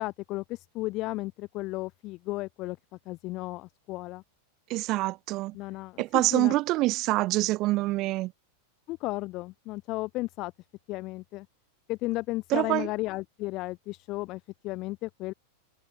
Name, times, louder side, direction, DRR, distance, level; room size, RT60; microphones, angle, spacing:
voice 1, 0.0-2.8 3.0-4.2 5.5-6.0 6.3-6.5 8.9-10.5 10.9-11.5 11.9-15.3, left 20 dB, 40° left, 3.2 m, -34 dB
voice 2, 4.7-5.5 6.0-8.3 12.5-12.9, right 19 dB, 40° right, 5.7 m, -26 dB
figure-of-eight pair, 90°, 0 cm